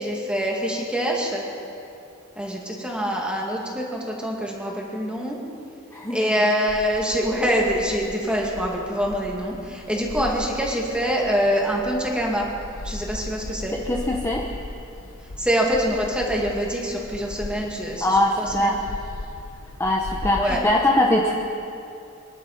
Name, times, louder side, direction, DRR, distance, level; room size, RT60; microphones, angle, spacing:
voice 1, 0.0-1.4 2.4-5.4 6.1-12.5 12.8-13.7 15.4-18.8 20.4-20.6, equal, 5° right, -2 dB, 2.2 m, -25 dB
voice 2, 5.9-6.3 13.9-14.5 18.0-18.8 19.8-21.3, left 1 dB, 15° left, -1 dB, 0.9 m, -21 dB
sound 1, 6.7-20.6, left 2 dB, 75° left, 0.9 m, -38 dB
26.0 x 11.5 x 4.2 m, 2.7 s
head